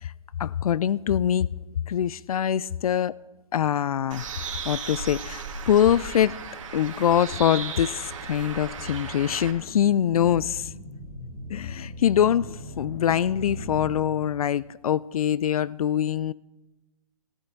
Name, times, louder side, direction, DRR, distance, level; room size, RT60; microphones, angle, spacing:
voice 1, 0.4-1.5 1.9-3.1 3.5-4.3 4.7-6.4 6.7-10.7 11.5-16.3, left 9 dB, 75° left, 0.4 m, -24 dB
Bird, 4.1-9.5, right 5 dB, 60° right, 2.2 m, -36 dB
sound 1, 8.2-14.6, left 1 dB, 30° left, 4.0 m, -40 dB
14.5 x 12.5 x 4.5 m
hypercardioid pair, 160°, 19 cm